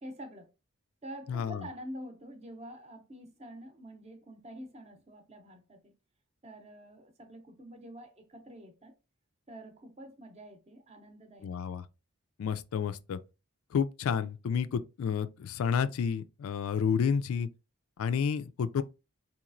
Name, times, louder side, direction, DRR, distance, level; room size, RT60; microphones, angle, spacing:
voice 1, 0.0-0.5 1.0-5.9 6.4-8.9 9.5-11.6, equal, 30° right, 0.6 m, -47 dB
voice 2, 1.3-1.6 11.4-11.8 12.4-13.2 13.7-17.5 18.0-18.8, left 7 dB, 80° left, 0.3 m, -30 dB
4.0 x 2.9 x 2.5 m
head